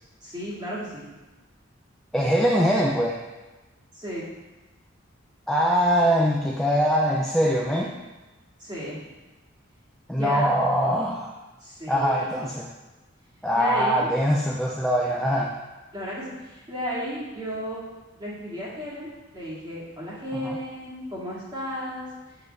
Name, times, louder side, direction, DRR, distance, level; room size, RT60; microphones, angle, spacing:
voice 1, 0.2-1.1 3.9-4.3 8.6-9.0 10.1-10.5 11.6-12.5 13.5-14.1 15.9-17.8 18.2-22.1, equal, 20° right, -7 dB, 2.0 m, -33 dB
voice 2, 2.1-3.2 5.5-7.9 10.1-11.4 11.9-12.7 13.4-15.5 20.3-20.6, equal, ahead, -3 dB, 0.4 m, -22 dB
6.7 x 6.4 x 3.3 m, 1.1 s
head